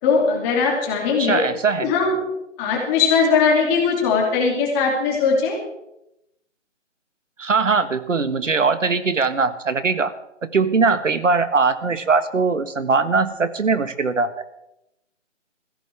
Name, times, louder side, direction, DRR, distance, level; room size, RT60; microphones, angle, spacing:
voice 1, 0.0-1.4 1.8-2.2 2.6-5.6, left 5 dB, 15° left, -1 dB, 2.7 m, -19 dB
voice 2, 1.2-1.9 7.4-10.1 10.5-14.4, right 4 dB, 80° right, 12 dB, 1.6 m, -20 dB
21.5 x 16.0 x 3.5 m, 0.85 s
figure-of-eight pair, 165°, 37 cm